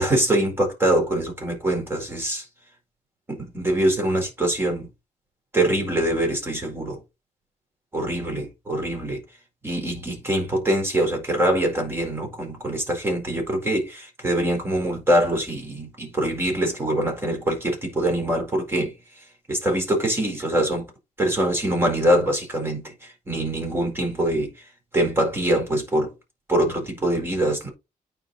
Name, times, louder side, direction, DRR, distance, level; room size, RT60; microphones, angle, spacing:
voice 1, 0.0-2.4 3.3-4.9 5.5-7.0 7.9-9.2 9.6-18.9 19.5-20.9 21.2-24.5 24.9-26.1 26.5-27.7, right 1 dB, 15° right, 4.4 m, -24 dB
9.1 x 5.3 x 4.2 m
wide cardioid pair, 160°, 14 cm